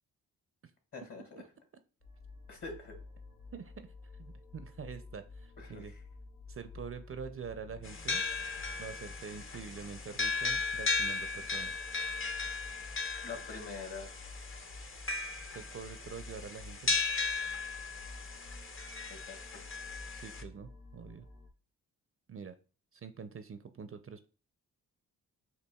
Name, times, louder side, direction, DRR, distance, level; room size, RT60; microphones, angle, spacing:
voice 1, 0.9-1.4 2.5-3.0 5.6-5.8 13.2-14.1 19.1-19.4, left 4 dB, 55° left, 3 dB, 1.9 m, -44 dB
sound 1, 2.0-21.5, left 3 dB, 85° left, 1.2 m, -51 dB
voice 2, 3.5-5.9 6.5-8.2 8.8-11.7 15.5-17.0 20.1-21.3 22.3-22.6 22.9-24.3, right 6 dB, 40° right, 10 dB, 0.5 m, -45 dB
sound 2, 7.8-20.4, left 4 dB, 35° left, 0.7 m, -36 dB
6.9 x 2.6 x 2.3 m, 0.36 s
supercardioid pair, 55°, 36 cm